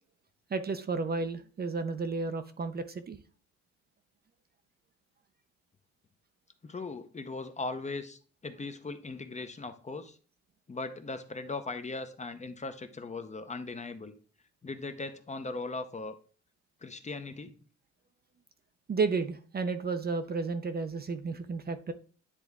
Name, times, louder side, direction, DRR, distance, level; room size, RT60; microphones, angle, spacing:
voice 1, 0.5-3.2 18.9-21.9, right 4 dB, 30° right, 10 dB, 0.6 m, -32 dB
voice 2, 6.6-10.2 10.7-14.1 14.6-16.2 16.8-17.5, left 3 dB, 25° left, 9 dB, 0.7 m, -39 dB
10.0 x 3.5 x 3.5 m, 0.39 s
cardioid pair, 90°, 30 cm